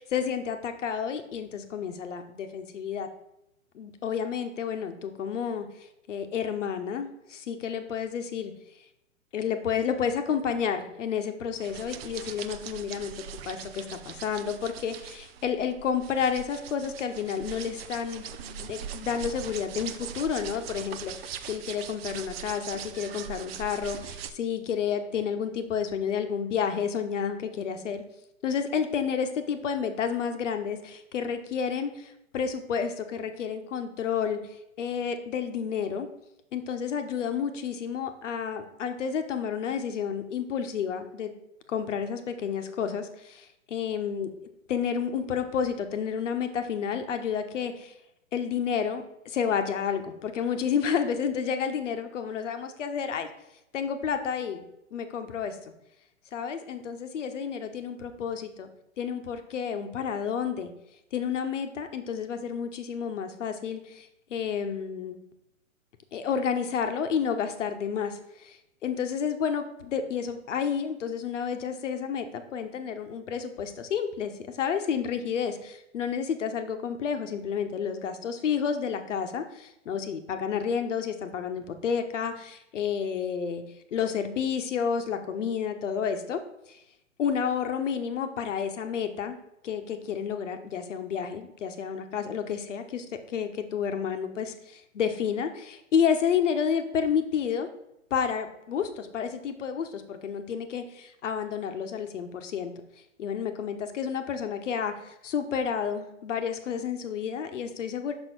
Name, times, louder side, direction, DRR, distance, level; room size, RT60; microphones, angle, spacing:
voice 1, 0.1-3.1 3.7-5.7 6.1-8.5 9.3-28.0 28.4-34.4 34.8-36.1 36.5-41.3 41.7-44.3 44.7-47.9 48.3-53.3 53.7-54.6 54.9-55.6 56.3-58.7 59.0-60.7 61.1-65.1 66.1-74.3 74.6-83.6 83.9-86.4 86.7-86.8 87.2-89.4 89.6-93.0 93.3-97.7 98.1-102.7 103.2-108.1, left 7 dB, 65° left, 8 dB, 1.1 m, -30 dB
sound 1, 11.6-24.3, right 8 dB, 50° right, 0.7 m, -41 dB
6.2 x 4.5 x 5.9 m, 0.83 s
hypercardioid pair, 125°, 40 cm